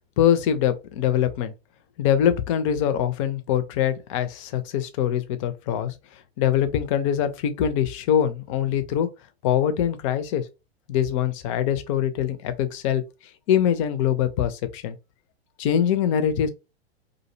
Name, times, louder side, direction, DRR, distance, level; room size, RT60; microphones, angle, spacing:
voice 1, 0.2-1.5 2.0-5.9 6.4-9.1 9.4-10.5 10.9-13.0 13.5-15.0 15.6-16.5, left 9 dB, 35° left, 0.4 m, -23 dB
2.5 x 2.0 x 2.6 m
figure-of-eight pair, 105°, 31 cm